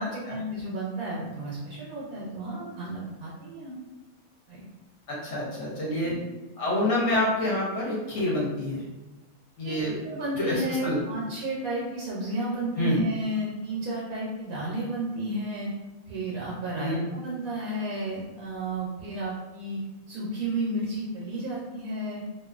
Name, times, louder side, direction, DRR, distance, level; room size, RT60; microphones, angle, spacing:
voice 1, 0.0-3.8 4.5-4.7 6.0-6.2 9.6-9.8 10.0-15.7 16.1-19.8 20.1-22.2, right 1 dB, 80° right, -6 dB, 1.0 m, -32 dB
voice 2, 5.1-6.1 6.6-8.8 9.6-10.0 10.4-11.0 12.8-13.0 16.8-17.0, left 1 dB, 60° left, -6 dB, 0.9 m, -27 dB
2.5 x 2.3 x 2.3 m, 1.1 s
omnidirectional pair, 1.5 m